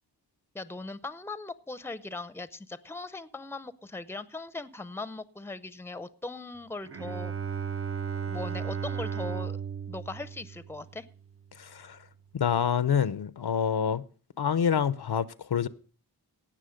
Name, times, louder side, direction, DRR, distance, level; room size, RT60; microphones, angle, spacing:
voice 1, 0.5-7.3 7.6-7.7 8.2-9.6 9.9-11.1, left 3 dB, 5° left, 0.6 m, -39 dB
Bowed string instrument, 6.8-11.4, right 7 dB, 35° right, 0.6 m, -35 dB
voice 2, 11.6-12.0 12.3-14.0 14.4-15.7, left 8 dB, 75° left, 0.7 m, -27 dB
17.5 x 6.2 x 5.1 m
wide cardioid pair, 65°, 40 cm